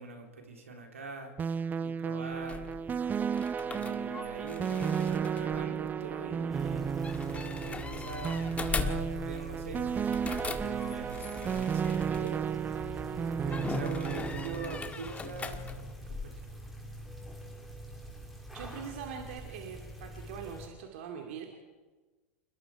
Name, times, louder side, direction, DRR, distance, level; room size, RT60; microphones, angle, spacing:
voice 1, 0.0-1.4 1.7-2.7 3.6-9.9 10.4-12.5 13.4-15.7 16.1-16.4, right 3 dB, 80° right, 3 dB, 3.8 m, -43 dB
sound 1, 1.4-14.9, right 7 dB, 25° right, 0.7 m, -33 dB
sound 2, 2.3-12.8 13.5-16.2, left 4 dB, 20° left, 1.9 m, -40 dB
sound 3, 6.5-20.7, right 1 dB, ahead, 4.6 m, -44 dB
voice 2, 18.5-21.5, right 7 dB, 65° right, 3 dB, 2.6 m, -42 dB
28.5 x 21.5 x 4.9 m, 1.3 s
figure-of-eight pair, 85°, 7 cm